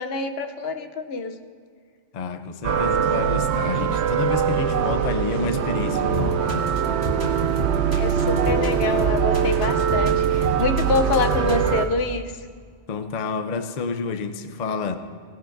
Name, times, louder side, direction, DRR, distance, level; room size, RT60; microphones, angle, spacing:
voice 1, 0.0-1.4 8.0-12.3, left 4 dB, 70° left, 7 dB, 1.0 m, -26 dB
voice 2, 2.1-6.8 12.9-15.0, left 5 dB, 45° left, 8 dB, 0.7 m, -29 dB
sound 1, 2.6-11.9, right 8 dB, 80° right, 0.9 m, -22 dB
sound 2, 6.1-11.8, equal, 50° right, 2.1 m, -31 dB
18.0 x 18.0 x 2.6 m, 2.1 s
omnidirectional pair, 1.1 m